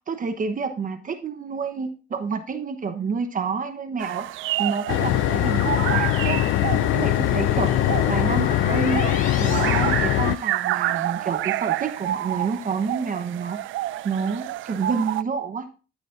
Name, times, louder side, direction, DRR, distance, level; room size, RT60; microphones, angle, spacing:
voice 1, 0.1-4.3 4.6-6.4 6.9-7.7 8.1-9.0 9.4-13.6 14.0-15.7, right 5 dB, 40° right, 8 dB, 1.1 m, -28 dB
sound 1, 4.0-15.2, right 14 dB, 80° right, 0.4 m, -29 dB
sound 2, 4.9-10.4, left 16 dB, 80° left, 0.4 m, -22 dB
sound 3, 6.0-10.8, left 2 dB, 40° left, 3.7 m, -35 dB
14.5 x 6.3 x 2.6 m, 0.34 s
cardioid pair, 90°, 20 cm